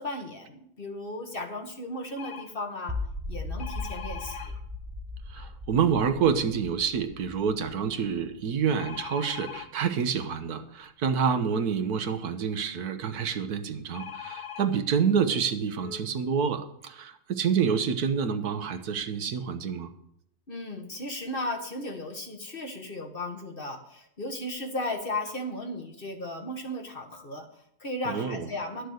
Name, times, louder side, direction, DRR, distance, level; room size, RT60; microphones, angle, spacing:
voice 1, 0.0-3.0 3.3-4.6 5.3-5.5 20.5-28.9, left 1 dB, 40° left, 5 dB, 1.4 m, -35 dB
sound 1, 2.2-2.5 3.6-4.5 8.8-9.7 13.9-14.6 15.5-15.6 15.8-16.0, left 8 dB, 80° left, 1.8 m, -40 dB
sound 2, 2.9-9.0, left 2 dB, 20° right, 0.6 m, -38 dB
voice 2, 5.3-19.9 28.1-28.5, right 6 dB, 75° right, 9 dB, 1.5 m, -28 dB
12.0 x 6.6 x 7.9 m, 0.74 s
omnidirectional pair, 1.6 m